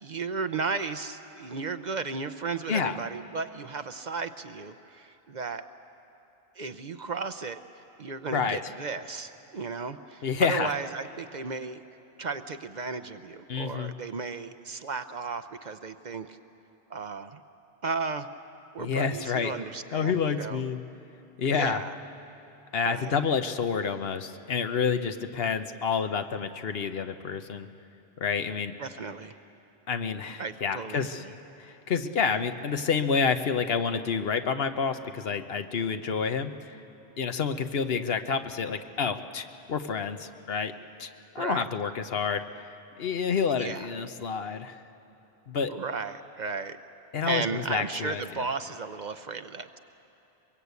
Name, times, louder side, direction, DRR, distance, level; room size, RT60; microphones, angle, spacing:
voice 1, 0.0-5.6 6.6-7.6 8.0-11.8 12.2-16.4 16.9-17.4 17.8-18.3 18.7-20.6 21.5-21.9 22.8-23.1 28.8-29.3 30.4-31.3 41.4-41.7 43.5-43.9 45.7-46.8 47.2-49.8, right 4 dB, 50° right, 10 dB, 0.7 m, -34 dB
voice 2, 10.2-10.7 13.5-13.9 18.8-19.6 19.9-20.8 21.4-21.8 22.7-27.7 28.2-28.7 29.9-31.2 31.7-36.8 37.2-40.7 41.0-41.1 41.3-42.7 43.0-44.8 45.5-45.7 47.1-48.5, left 6 dB, 65° left, 8 dB, 1.1 m, -29 dB
23.5 x 22.5 x 8.3 m, 2.9 s
omnidirectional pair, 1.1 m